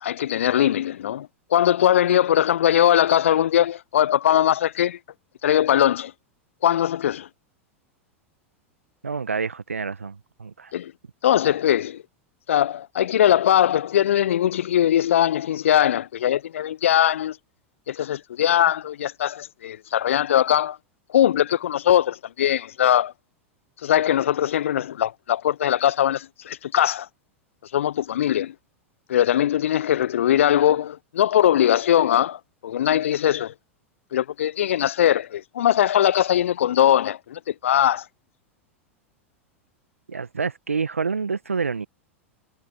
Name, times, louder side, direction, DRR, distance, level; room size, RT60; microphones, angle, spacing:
voice 1, 0.0-5.0 5.4-6.1 6.6-7.3 10.7-10.9 11.2-12.0 12.5-17.4 17.9-20.8 21.1-23.1 23.8-27.1 27.7-28.5 29.1-33.5 34.1-38.0, left 11 dB, 70° left, 0.4 m, -21 dB
voice 2, 9.0-10.7 40.1-41.9, right 5 dB, 85° right, 1.2 m, -28 dB
figure-of-eight pair, 90°, 7 cm